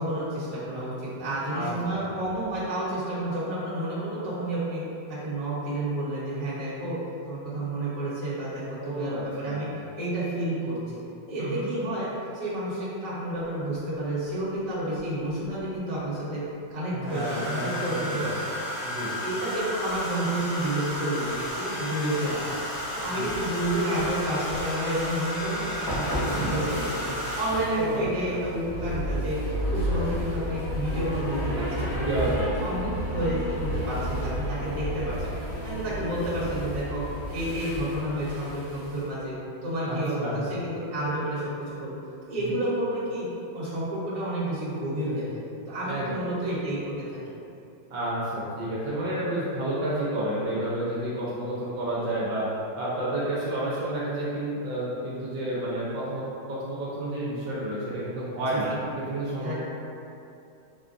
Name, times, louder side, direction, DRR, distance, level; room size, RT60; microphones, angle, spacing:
voice 1, 0.0-4.8 5.1-7.0 7.3-9.7 10.0-10.8 11.3-12.1 12.3-16.4 16.7-18.3 19.2-22.5 22.9-32.3 32.6-37.0 37.3-39.3 39.6-41.4 41.8-42.0 42.3-43.2 43.5-45.2 45.7-47.2 58.5-58.8 59.4-59.5, right 1 dB, 50° right, -10 dB, 1.4 m, -30 dB
voice 2, 1.5-2.1 8.8-9.7 11.4-11.7 16.9-18.4 18.8-19.1 23.1-23.3 26.3-26.7 27.7-28.4 31.9-32.5 39.9-40.4 42.4-42.5 45.8-46.3 47.9-52.4 52.8-59.5, right 1 dB, 80° right, -8 dB, 1.4 m, -31 dB
Domestic sounds home sounds, 15.4-15.6 17.0-27.8 29.0-29.3 29.5-29.9, equal, 85° left, 2.1 m, -33 dB
sound 1, 25.2-39.0, equal, 65° left, 1.9 m, -32 dB
4.9 x 2.2 x 2.5 m, 2.7 s
omnidirectional pair, 1.9 m